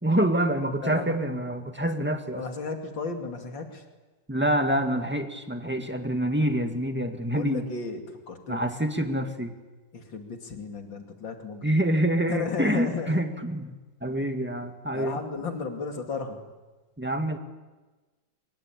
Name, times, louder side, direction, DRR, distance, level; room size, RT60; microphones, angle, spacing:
voice 1, 0.0-2.4 4.3-7.6 8.5-9.6 11.6-13.7 14.0-15.2 17.0-17.4, right 1 dB, 5° right, 6 dB, 1.7 m, -26 dB
voice 2, 0.8-1.2 2.3-3.8 7.3-8.0 8.3-8.7 9.9-11.7 12.3-13.2 14.2-14.3 14.9-16.4, left 4 dB, 75° left, 4 dB, 3.3 m, -34 dB
24.5 x 22.0 x 8.9 m, 1.2 s
omnidirectional pair, 2.1 m